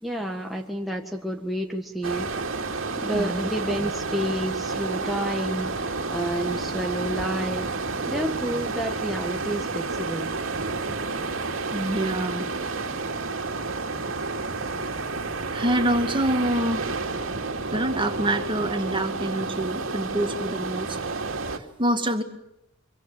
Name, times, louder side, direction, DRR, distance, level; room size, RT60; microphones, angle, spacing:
voice 1, 0.0-2.3 3.0-7.7 8.1-10.3, right 1 dB, ahead, 0 dB, 1.6 m, -30 dB
sound 1, 2.0-21.6, right 3 dB, 70° right, 2.6 m, -30 dB
voice 2, 3.1-3.5 11.7-12.5 15.5-17.2 17.7-21.0 21.5-22.2, right 1 dB, 25° right, 6 dB, 2.3 m, -26 dB
25.5 x 24.5 x 7.8 m, 0.81 s
head